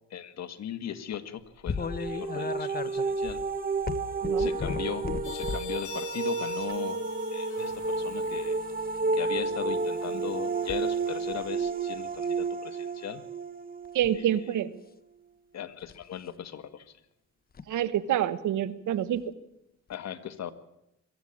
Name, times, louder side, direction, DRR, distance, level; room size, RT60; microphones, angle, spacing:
voice 1, 0.1-3.4 4.4-7.0 7.3-8.6 9.1-13.2 14.2-14.4 15.5-16.9 19.9-20.5, left 9 dB, 60° left, 11 dB, 1.6 m, -38 dB
sound 1, 1.7-5.8 6.5-6.8 8.6-9.0 10.7-10.8 11.3-11.7 12.1-12.4 13.8-14.2 15.8-16.0 17.5-17.7 19.2-19.3 19.9-20.0, left 5 dB, 30° left, 1.0 m, -36 dB
sound 2, 1.8-14.6, right 4 dB, 30° right, 1.6 m, -31 dB
sound 3, 5.2-12.0, left 7 dB, 80° left, 2.7 m, -46 dB
voice 2, 13.9-14.7 17.7-19.2, right 11 dB, 75° right, 14 dB, 1.3 m, -27 dB
23.0 x 14.5 x 8.8 m, 0.87 s
cardioid pair, 90°, 30 cm